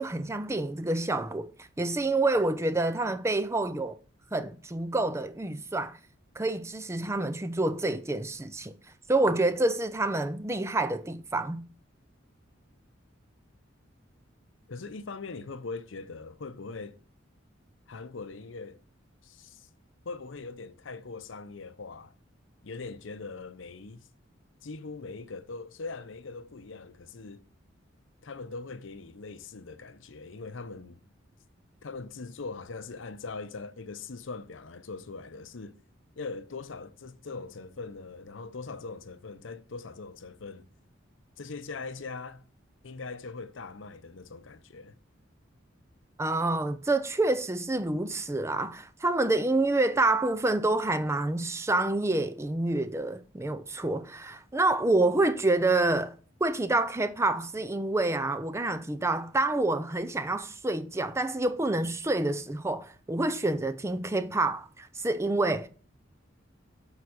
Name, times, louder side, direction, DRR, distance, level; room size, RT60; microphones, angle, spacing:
voice 1, 0.0-1.5 1.8-4.0 4.3-5.9 6.4-8.7 9.1-11.6 46.2-56.1 56.4-65.7, right 2 dB, 15° right, 0.4 m, -27 dB
voice 2, 14.7-17.0 17.9-18.8 19.2-19.7 20.0-22.1 22.6-24.1 24.6-27.5 28.2-31.0 31.8-35.8 36.2-40.7 41.4-42.4 42.8-45.0, left 4 dB, 75° left, 0.7 m, -41 dB
7.0 x 4.8 x 6.3 m
head